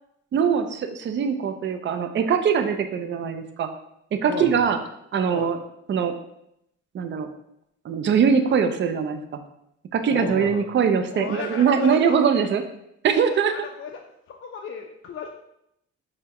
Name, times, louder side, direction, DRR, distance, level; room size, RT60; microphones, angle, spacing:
voice 1, 0.3-3.7 4.1-4.8 5.1-5.6 5.9-6.1 6.9-7.3 7.8-9.2 9.9-12.6 13.0-13.5, right 7 dB, 40° right, 8 dB, 0.4 m, -22 dB
voice 2, 4.3-4.7 5.3-5.5 10.1-10.7 11.1-12.2 13.3-14.0 14.3-15.3, left 7 dB, 45° left, 2 dB, 0.4 m, -34 dB
5.5 x 2.1 x 2.9 m, 0.78 s
cardioid pair, 90°, 30 cm